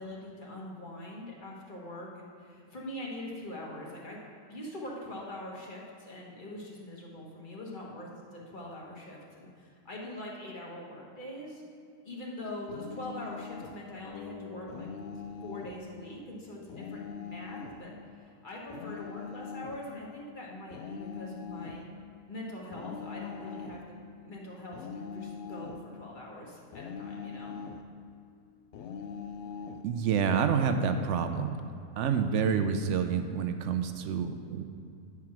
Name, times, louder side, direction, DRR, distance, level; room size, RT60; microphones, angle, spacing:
voice 1, 0.0-4.2 4.5-11.6 12.0-14.9 15.4-21.8 22.3-27.6, left 1 dB, 35° left, -2 dB, 1.3 m, -43 dB
sound 1, 12.7-13.8 14.7-15.8 16.7-17.8 18.7-19.8 20.7-21.8 22.7-23.8 24.7-25.9 26.7-27.9 28.7-29.8, left 6 dB, 70° left, 0.7 m, -42 dB
sound 2, 14.1-17.3, left 3 dB, 90° left, 2.3 m, -49 dB
voice 2, 29.8-31.6 32.0-34.6, right 6 dB, 70° right, 8 dB, 0.7 m, -28 dB
9.1 x 4.8 x 5.9 m, 2.5 s
omnidirectional pair, 1.7 m